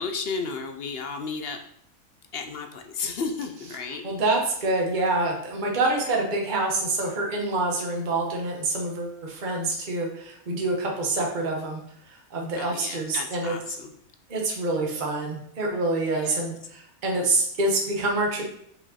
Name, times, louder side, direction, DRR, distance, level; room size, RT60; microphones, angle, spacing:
voice 1, 0.0-1.6 2.3-4.0 12.6-13.9 16.1-16.5, left 4 dB, 55° left, 5 dB, 0.7 m, -33 dB
voice 2, 4.0-11.8 12.1-13.6 14.3-18.4, right 2 dB, 35° right, 0 dB, 1.2 m, -26 dB
5.4 x 5.2 x 4.2 m, 0.70 s
omnidirectional pair, 1.5 m